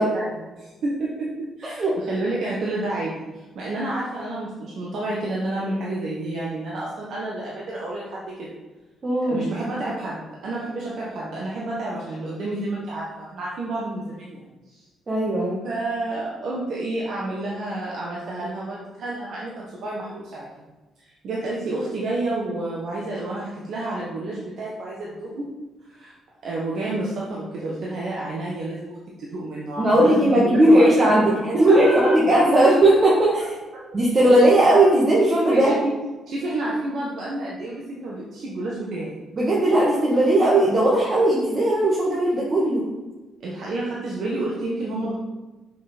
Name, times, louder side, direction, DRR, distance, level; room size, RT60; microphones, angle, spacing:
voice 1, 0.0-3.1 3.5-8.5 9.3-14.8 15.6-20.5 21.0-25.5 25.9-26.1 26.4-31.4 31.7-32.1 35.5-35.9 36.3-39.2 43.4-45.1, right 2 dB, 65° right, -5 dB, 1.3 m, -30 dB
voice 2, 1.6-1.9 9.0-9.4 15.1-15.6 29.8-33.4 33.9-35.7 39.3-42.9, right 1 dB, 40° right, -5 dB, 1.8 m, -17 dB
6.2 x 5.5 x 4.3 m, 1.2 s
hypercardioid pair, 45°, 0 cm